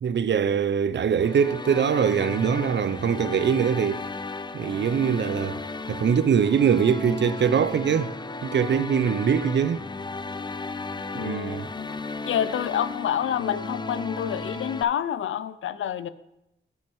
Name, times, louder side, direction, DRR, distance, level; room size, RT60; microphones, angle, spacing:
voice 1, 0.0-4.1 4.5-5.6 5.9-8.1 8.4-9.8 11.1-11.7, right 7 dB, 65° right, 0.5 m, -23 dB
sound 1, 1.2-14.8, left 3 dB, 20° left, 0.5 m, -35 dB
voice 2, 11.1-11.9 12.3-16.1, left 9 dB, 85° left, 0.4 m, -28 dB
8.4 x 6.2 x 4.6 m
cardioid pair, 50°, 20 cm